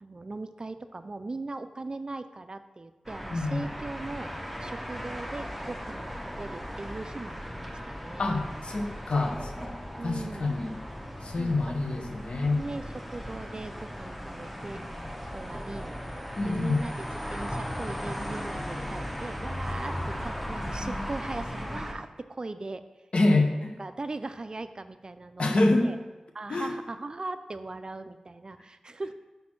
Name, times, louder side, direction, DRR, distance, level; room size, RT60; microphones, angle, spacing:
voice 1, 0.0-4.3 4.6-8.5 10.0-10.5 11.4-11.8 12.5-14.8 15.3-22.8 23.8-26.0 26.3-29.1, right 2 dB, 40° right, 11 dB, 0.3 m, -39 dB
sound 1, 3.1-21.9, equal, ahead, 0.8 m, -37 dB
voice 2, 8.2-9.5 10.0-10.7 11.2-12.6 16.4-16.8 23.1-23.7 25.4-25.9 26.5-26.7, left 2 dB, 60° left, 3 dB, 0.7 m, -26 dB
5.2 x 4.2 x 5.9 m, 1.2 s
wide cardioid pair, 65°, 2 cm